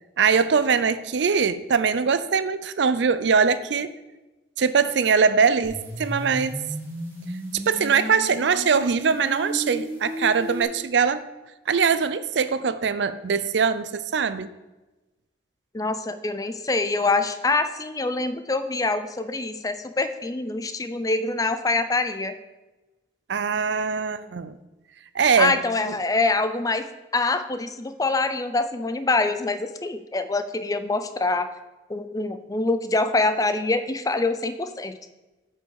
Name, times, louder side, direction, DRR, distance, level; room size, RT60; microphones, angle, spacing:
voice 1, 0.2-3.9 4.6-6.6 7.5-11.2 11.7-14.5 23.3-24.6 25.1-25.6 25.9-26.0, right 5 dB, 70° right, 14 dB, 0.5 m, -22 dB
sound 1, 5.6-10.6, equal, 10° right, 2.3 m, -34 dB
voice 2, 15.7-22.3 25.4-26.9 27.1-31.5 31.9-35.0, left 3 dB, 20° left, 11 dB, 0.5 m, -25 dB
8.3 x 5.5 x 6.3 m, 1.1 s
head